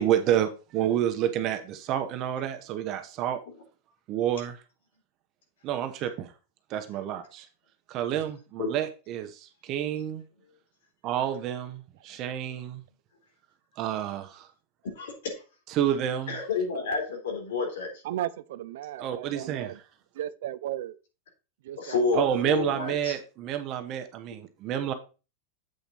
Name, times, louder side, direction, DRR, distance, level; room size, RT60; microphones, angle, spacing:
voice 1, 0.0-3.4 4.1-4.6 5.6-6.3 6.7-7.5 7.9-10.2 11.0-12.8 13.8-14.5 15.7-16.4 19.0-19.8 22.1-24.9, right 10 dB, 40° right, 1.0 m, -29 dB
voice 2, 14.9-15.4 16.3-17.9 21.8-23.1, left 4 dB, 90° left, 3.5 m, -29 dB
voice 3, 18.0-19.8 20.1-21.0 21.6-22.3, right 13 dB, 75° right, 0.5 m, -35 dB
7.9 x 4.3 x 5.3 m
supercardioid pair, 140°, 0 cm